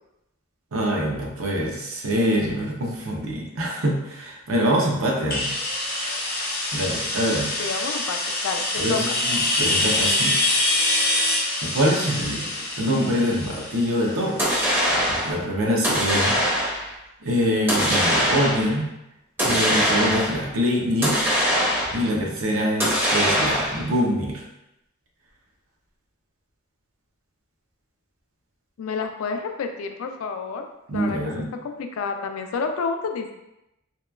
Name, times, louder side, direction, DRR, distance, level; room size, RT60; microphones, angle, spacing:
voice 1, 0.7-5.5 5.9-6.1 6.7-7.5 8.8-10.4 11.6-12.5 12.8-14.5 15.2-16.4 17.2-18.9 19.4-21.2 21.9-24.4 30.9-31.5, equal, 80° right, -1 dB, 0.6 m, -24 dB
sound 1, 5.3-14.9, left 2 dB, 45° left, 0.7 m, -25 dB
voice 2, 7.6-9.2 28.8-30.7 30.9-31.2 31.6-33.3, left 5 dB, 80° left, 5 dB, 0.3 m, -29 dB
sound 2, 14.4-15.4 15.8-16.9 17.7-18.7 19.4-20.4 21.0-22.1 22.8-23.9, equal, 10° right, 0.5 m, -22 dB
2.8 x 2.2 x 2.2 m, 0.89 s
head